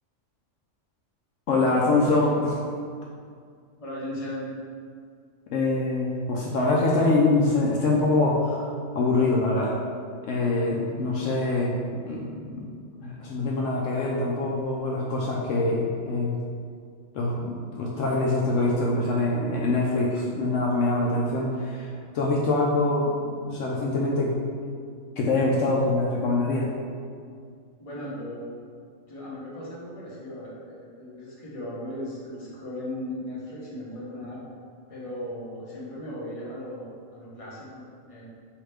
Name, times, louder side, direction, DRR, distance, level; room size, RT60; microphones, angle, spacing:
voice 1, 1.5-2.6 5.5-9.7 10.2-12.7 13.0-16.4 17.1-24.4 25.2-26.7, left 2 dB, 75° left, -3 dB, 0.9 m, -24 dB
voice 2, 3.8-4.5 27.8-28.5 29.1-34.4 34.9-37.8 38.1-38.2, left 1 dB, 30° left, -7 dB, 1.0 m, -37 dB
4.8 x 2.8 x 3.3 m, 2.2 s
omnidirectional pair, 1.3 m